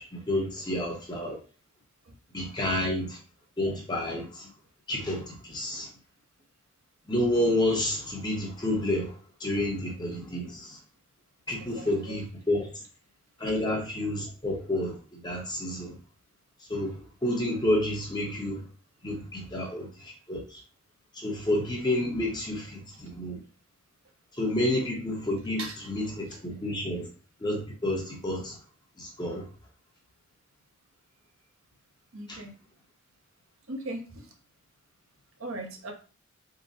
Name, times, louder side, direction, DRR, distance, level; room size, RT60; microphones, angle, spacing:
voice 1, 0.0-1.4 2.3-3.2 3.6-4.5 4.9-5.9 7.1-9.1 9.4-10.8 11.5-12.7 13.4-15.9 16.7-18.6 19.0-20.6 21.1-23.4 24.4-27.1 27.4-28.6 29.0-29.4 32.3-32.4, left 1 dB, 20° left, 0.9 m, -30 dB
voice 2, 11.7-12.2 22.9-23.0 25.6-25.8 26.3-26.4 32.1-32.5 33.7-34.3 35.4-35.9, right 2 dB, 65° right, 0.9 m, -39 dB
3.8 x 2.1 x 4.1 m
head